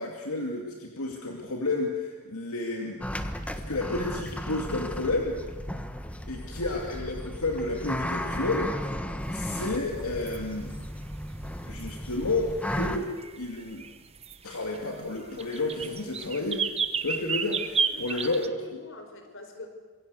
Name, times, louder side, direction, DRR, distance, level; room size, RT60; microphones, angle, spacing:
voice 1, 0.0-3.0 3.7-5.3 6.3-9.0 9.3-10.7 11.7-13.1 13.4-13.8 14.4-16.6 17.0-18.5, left 2 dB, 80° left, 1 dB, 2.5 m, -31 dB
sound 1, 3.0-13.0, equal, 5° left, 1.4 m, -35 dB
sound 2, 9.3-18.5, right 5 dB, 30° right, 1.1 m, -32 dB
voice 2, 17.8-18.3 18.6-19.7, left 3 dB, 60° left, 5 dB, 4.8 m, -44 dB
27.0 x 22.5 x 8.2 m, 1.4 s
head